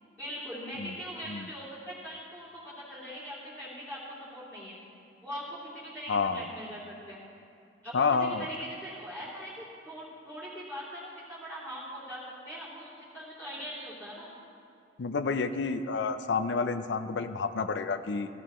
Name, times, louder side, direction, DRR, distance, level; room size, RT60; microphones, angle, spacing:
voice 1, 0.2-4.8 5.2-7.2 7.8-14.3, equal, 15° right, -14 dB, 3.0 m, -41 dB
voice 2, 6.1-6.4 7.9-8.5 15.0-18.3, left 4 dB, 85° left, 9 dB, 0.5 m, -29 dB
15.0 x 15.0 x 3.1 m, 2.5 s
head